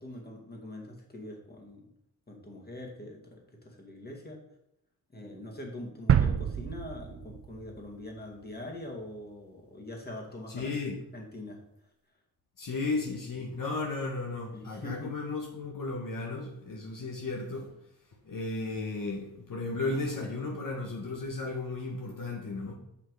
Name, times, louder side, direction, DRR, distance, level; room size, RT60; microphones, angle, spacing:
voice 1, 0.0-1.8 2.3-4.4 5.1-10.8 11.1-11.6 14.5-15.2, left 1 dB, 25° left, 0 dB, 2.2 m, -43 dB
sound 1, 6.1-8.0 8.4-8.5, right 8 dB, 35° right, 0.5 m, -28 dB
voice 2, 10.5-11.0 12.6-17.7 18.2-22.7, left 3 dB, 55° left, 0 dB, 1.4 m, -34 dB
6.6 x 6.1 x 4.8 m, 0.80 s
cardioid pair, 80°, 39 cm